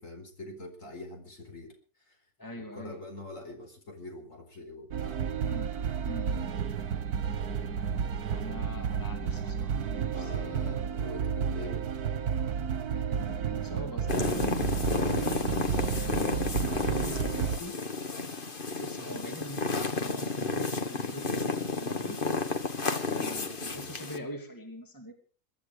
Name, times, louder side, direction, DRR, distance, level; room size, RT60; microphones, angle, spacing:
voice 1, 0.0-1.7 2.1-2.2 2.6-5.2 10.1-11.9 16.4-16.9 23.6-24.0, left 1 dB, 60° left, 4 dB, 4.6 m, -44 dB
voice 2, 2.4-3.0 5.4-5.7 6.0-6.5 8.3-10.8 12.9-14.7 15.9-16.4 16.8-17.8 18.8-22.2 23.1-25.1, equal, 15° left, 4 dB, 2.8 m, -43 dB
sound 1, 4.9-17.6, right 7 dB, 85° right, 1.6 m, -32 dB
sound 2, 5.3-10.9, right 5 dB, 50° right, 1.8 m, -45 dB
sound 3, 14.1-24.2, left 4 dB, 35° left, 1.6 m, -32 dB
23.0 x 12.5 x 4.9 m, 0.40 s
omnidirectional pair, 1.6 m